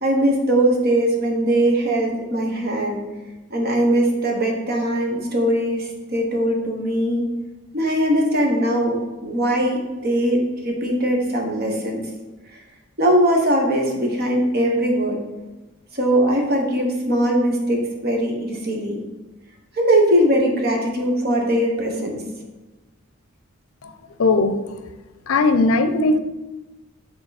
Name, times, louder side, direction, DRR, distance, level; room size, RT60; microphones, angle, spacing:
voice 1, 0.0-3.0 3.5-7.3 7.7-12.0 12.5-12.6 13.0-15.2 15.9-19.0 19.7-22.2, right 1 dB, 45° right, 1 dB, 1.2 m, -20 dB
voice 2, 24.2-24.6 25.3-26.2, left 3 dB, 75° left, 10 dB, 0.5 m, -17 dB
8.7 x 3.8 x 4.1 m, 1.1 s
head